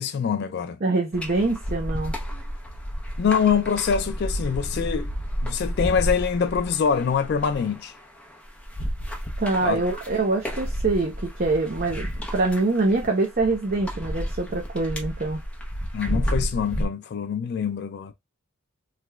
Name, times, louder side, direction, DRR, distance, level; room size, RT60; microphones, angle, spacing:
voice 1, 0.0-0.8 3.2-5.1 5.4-7.9 9.6-9.8 15.9-18.1, left 6 dB, 50° left, 0.3 m, -24 dB
voice 2, 0.8-2.1 9.4-15.4, right 3 dB, 40° right, 0.6 m, -24 dB
sound 1, 1.1-16.9, equal, 5° left, 0.7 m, -31 dB
3.2 x 2.9 x 2.3 m
head